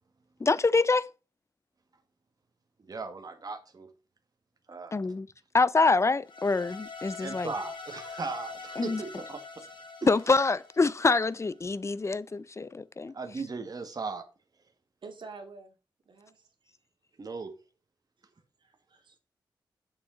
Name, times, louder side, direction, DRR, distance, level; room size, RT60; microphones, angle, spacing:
voice 1, 0.4-1.1 4.9-5.3 5.5-7.5 8.8-9.0 10.1-13.1, left 3 dB, 35° left, 0.6 m, -25 dB
voice 2, 2.8-3.9 4.7-5.0 7.2-9.4 10.0-10.1 13.1-14.2 17.2-17.5, right 4 dB, 50° right, 1.8 m, -37 dB
sound 1, 6.2-11.5, left 4 dB, 75° left, 3.0 m, -44 dB
voice 3, 15.0-15.8 16.1-16.7 18.6-19.1, right 4 dB, 70° right, 2.4 m, -48 dB
8.7 x 7.3 x 3.9 m
cardioid pair, 65°, 9 cm